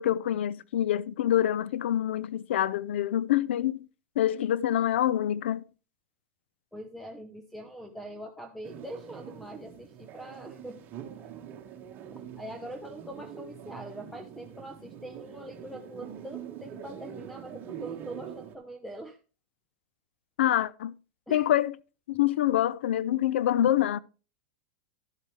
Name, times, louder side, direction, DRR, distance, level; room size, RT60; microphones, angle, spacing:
voice 1, 0.0-3.9 4.2-5.6 20.4-20.9 21.3-21.7 22.1-24.0, left 12 dB, 75° left, 0.5 m, -26 dB
voice 2, 6.7-10.8 12.1-19.2 21.3-21.5, right 1 dB, 5° left, 0.9 m, -43 dB
sound 1, 8.6-18.6, right 9 dB, 35° right, 1.7 m, -44 dB
11.5 x 8.1 x 3.3 m
hypercardioid pair, 125°, 6 cm